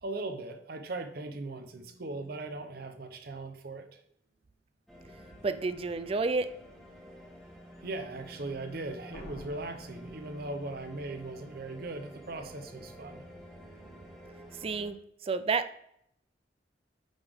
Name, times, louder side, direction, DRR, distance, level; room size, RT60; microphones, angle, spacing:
voice 1, 0.0-4.0 7.8-13.2, right 2 dB, 60° right, 7 dB, 0.8 m, -39 dB
sound 1, 4.9-14.9, equal, ahead, 1.3 m, -50 dB
voice 2, 5.4-6.5 14.6-15.0 15.2-15.7, right 4 dB, 35° right, 11 dB, 0.4 m, -30 dB
sound 2, 9.1-10.9, left 1 dB, 35° left, 1.0 m, -49 dB
9.0 x 3.6 x 3.5 m, 0.71 s
head